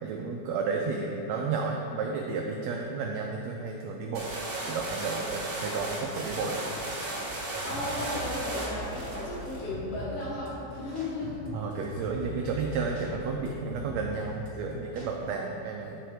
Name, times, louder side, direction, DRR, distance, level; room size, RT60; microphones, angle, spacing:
voice 1, 0.0-4.3 4.6-6.6 11.5-16.0, right 4 dB, 85° right, 1 dB, 1.5 m, -32 dB
sound 1, 4.1-9.6, right 1 dB, 65° right, 0.9 m, -35 dB
voice 2, 7.2-11.5, left 2 dB, 80° left, -11 dB, 2.8 m, -35 dB
sound 2, 7.5-15.2, left 1 dB, 30° right, 1.7 m, -42 dB
9.2 x 4.1 x 4.5 m, 2.9 s
omnidirectional pair, 3.5 m